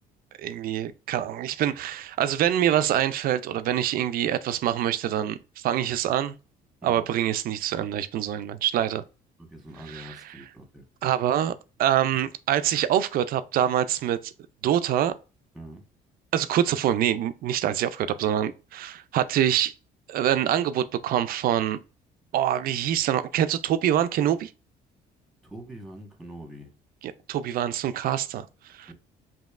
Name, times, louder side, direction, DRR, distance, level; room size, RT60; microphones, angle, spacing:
voice 1, 0.4-6.3 6.8-9.0 9.8-10.5 11.0-11.5 11.8-14.3 14.6-15.2 16.3-19.7 20.1-21.8 22.3-24.5 27.0-28.5 28.7-28.9, right 11 dB, 60° right, 0.4 m, -25 dB
voice 2, 9.4-10.8 15.5-15.8 25.4-26.7 28.9-29.0, right 1 dB, ahead, 1.2 m, -43 dB
5.1 x 2.7 x 2.4 m
cardioid pair, 110°, 17 cm